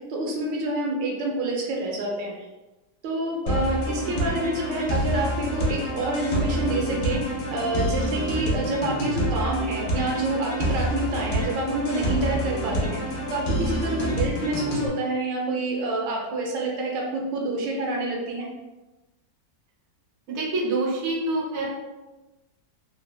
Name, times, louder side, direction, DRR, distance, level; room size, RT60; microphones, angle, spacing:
voice 1, 0.1-2.3 3.0-7.2 7.5-13.0 13.3-18.5, right 2 dB, 90° right, -1 dB, 1.3 m, -28 dB
sound 1, 3.5-14.9, equal, 75° left, 1.2 m, -27 dB
voice 2, 20.3-21.7, right 2 dB, 55° right, -4 dB, 0.8 m, -26 dB
3.4 x 2.0 x 2.2 m, 1.1 s
omnidirectional pair, 1.9 m